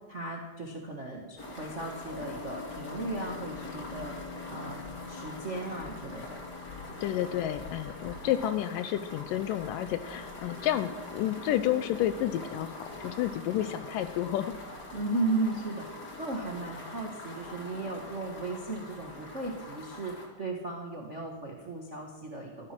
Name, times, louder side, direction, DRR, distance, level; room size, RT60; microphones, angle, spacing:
voice 1, 0.1-4.2 4.5-6.4 14.9-22.7, right 2 dB, 50° right, 0 dB, 0.8 m, -36 dB
sound 1, 1.4-20.3, left 1 dB, 30° left, 2.3 m, -44 dB
Keyboard (musical), 2.1-14.6, left 7 dB, 60° left, 3.6 m, -48 dB
voice 2, 7.0-14.5, left 12 dB, 80° left, 11 dB, 2.1 m, -30 dB
14.5 x 14.0 x 6.1 m, 1.3 s
omnidirectional pair, 4.2 m